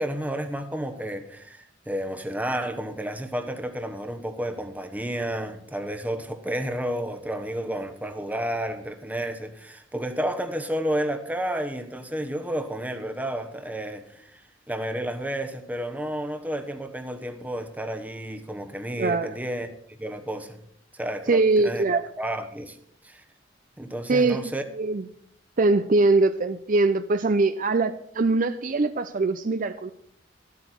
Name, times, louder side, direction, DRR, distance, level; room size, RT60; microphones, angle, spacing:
voice 1, 0.0-14.4 14.7-19.7 20.0-20.6 20.9-21.9 22.2-22.8 23.0-23.2 23.8-24.6, right 1 dB, 10° right, 1.0 m, -31 dB
voice 2, 19.0-19.3 21.3-22.0 24.1-24.4 24.8-25.0 25.6-29.9, right 3 dB, 45° right, 0.5 m, -22 dB
13.5 x 12.0 x 4.6 m
head